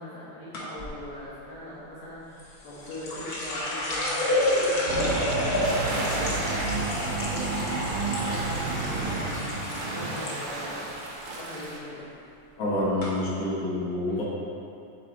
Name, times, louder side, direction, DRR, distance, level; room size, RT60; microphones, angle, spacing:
voice 1, 0.0-5.8 6.2-12.1 14.1-14.2, left 1 dB, 65° left, -9 dB, 2.5 m, -41 dB
sound 1, 0.5-0.9 2.4-10.3 10.6-11.2 11.6-11.9 12.6-12.7 13.0-13.1, left 1 dB, 85° left, 0.8 m, -29 dB
sound 2, 4.9-9.8, right 4 dB, 90° right, 2.2 m, -31 dB
sound 3, 5.6-11.8, right 1 dB, 60° right, 1.5 m, -36 dB
voice 2, 12.6-14.2, left 1 dB, 45° left, -6 dB, 1.1 m, -27 dB
8.7 x 4.8 x 4.2 m, 2.6 s
omnidirectional pair, 3.6 m